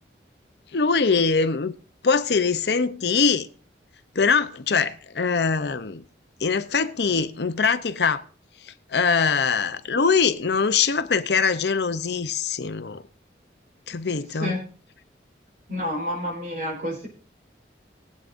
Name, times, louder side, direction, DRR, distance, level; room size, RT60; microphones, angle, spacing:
voice 1, 0.7-1.7 2.0-3.5 4.1-6.0 6.4-8.2 8.6-13.0 13.9-14.6, left 5 dB, 70° left, 0.7 m, -23 dB
voice 2, 15.7-17.1, left 1 dB, 50° right, 4.6 m, -29 dB
22.0 x 8.4 x 2.6 m
head